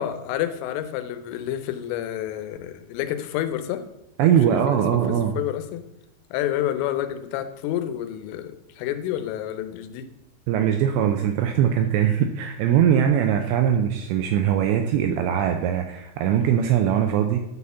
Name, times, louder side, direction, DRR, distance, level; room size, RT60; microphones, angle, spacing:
voice 1, 0.0-3.8 4.2-5.8 6.3-10.1, left 11 dB, 90° left, 10 dB, 3.3 m, -29 dB
voice 2, 4.2-5.4 10.5-17.4, right 9 dB, 85° right, 5 dB, 2.5 m, -21 dB
11.5 x 4.2 x 6.8 m, 0.91 s
omnidirectional pair, 5.6 m